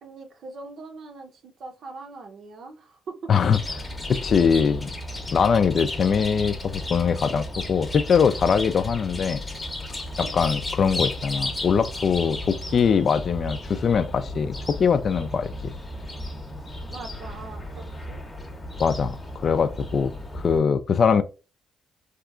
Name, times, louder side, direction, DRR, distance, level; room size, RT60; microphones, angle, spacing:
voice 1, 0.0-3.3 10.2-10.3 16.9-18.2, right 3 dB, 65° right, 0.6 m, -41 dB
Chirp tweet, 3.4-20.6, left 1 dB, 25° left, 0.7 m, -34 dB
voice 2, 4.1-4.9 5.3-9.4 10.2-15.7 18.8-21.2, left 6 dB, 55° left, 0.3 m, -22 dB
2.8 x 2.4 x 2.4 m
supercardioid pair, 70°, 0 cm